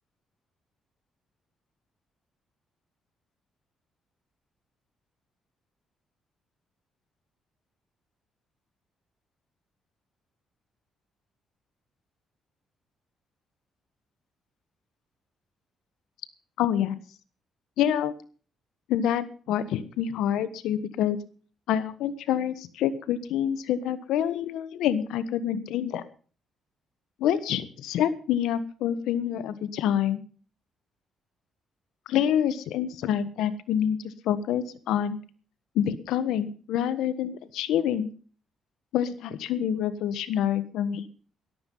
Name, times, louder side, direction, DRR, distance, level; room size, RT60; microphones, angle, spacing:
voice 1, 16.6-16.9 17.8-18.1 18.9-21.2 21.7-26.0 27.2-30.2 32.1-35.2 35.7-38.1 38.9-41.1, left 10 dB, 85° left, 13 dB, 1.3 m, -27 dB
14.0 x 12.0 x 5.5 m, 0.41 s
cardioid pair, 90°, 0 cm